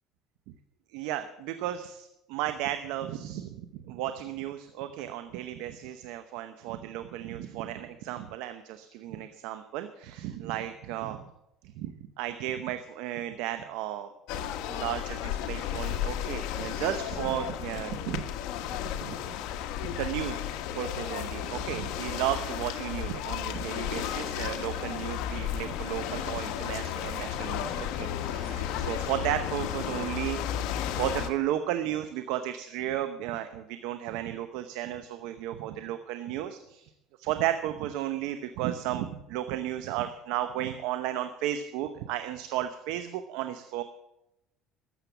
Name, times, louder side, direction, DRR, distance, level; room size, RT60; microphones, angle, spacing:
voice 1, 0.9-11.2 11.8-14.1 14.7-18.2 19.0-19.2 19.8-20.4 20.7-36.9 37.2-43.8, right 12 dB, 80° right, 9 dB, 0.8 m, -34 dB
sound 1, 14.3-31.3, left 10 dB, 75° left, 1.3 m, -33 dB
13.0 x 7.6 x 8.2 m, 0.86 s
supercardioid pair, 100°, 0 cm